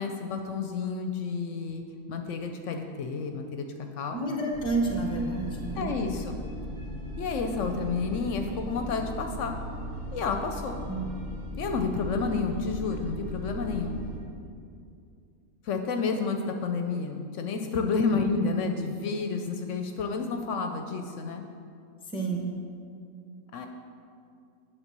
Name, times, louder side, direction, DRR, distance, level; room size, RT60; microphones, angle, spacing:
voice 1, 0.0-3.7 4.0-4.2 5.7-6.4 7.2-9.6 10.1-10.8 11.6-14.0 15.6-21.4 23.5-23.7, left 4 dB, 70° left, 5 dB, 0.8 m, -30 dB
voice 2, 4.1-5.9 10.9-11.1 18.1-18.2 22.1-22.5, right 3 dB, 5° left, 1 dB, 0.6 m, -29 dB
sound 1, 4.5-14.2, equal, 40° right, 1.5 m, -38 dB
9.0 x 3.9 x 6.6 m, 2.4 s
omnidirectional pair, 1.4 m